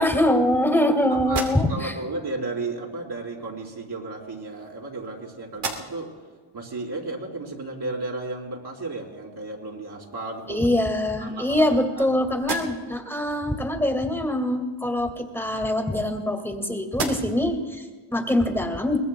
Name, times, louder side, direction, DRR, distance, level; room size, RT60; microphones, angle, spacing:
voice 1, 0.0-1.9 10.5-19.0, left 1 dB, 5° left, 4 dB, 2.1 m, -23 dB
voice 2, 1.1-6.1 6.5-10.7 11.2-11.7 11.9-12.1, right 2 dB, 50° right, -2 dB, 4.6 m, -34 dB
sound 1, 1.2-2.1 3.2-3.4 4.3-5.2 5.5-6.2 6.7-6.8 9.5-9.6 10.0-10.7 11.3-12.0 12.3-13.1 15.1-16.5 16.9-17.6, right 4 dB, 85° right, 3.0 m, -36 dB
24.5 x 20.5 x 2.3 m, 1.4 s
cardioid pair, 75°, 49 cm